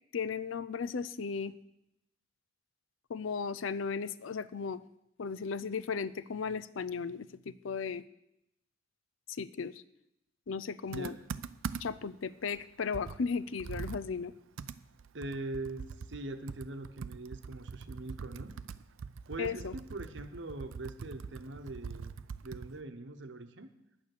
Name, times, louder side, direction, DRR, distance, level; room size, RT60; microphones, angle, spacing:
voice 1, 0.1-1.5 3.1-4.8 5.2-8.0 9.4-9.8 10.5-11.1 11.8-14.3 19.4-19.7, left 5 dB, 80° left, 16 dB, 0.5 m, -36 dB
voice 2, 10.9-11.2 15.1-18.5 19.3-22.1 22.4-23.7, right 2 dB, 65° right, 8 dB, 1.0 m, -42 dB
Computer keyboard, 10.9-12.1 12.5-12.6 12.9-22.8, right 5 dB, 85° right, 0.5 m, -43 dB
9.6 x 9.1 x 6.7 m, 0.80 s
head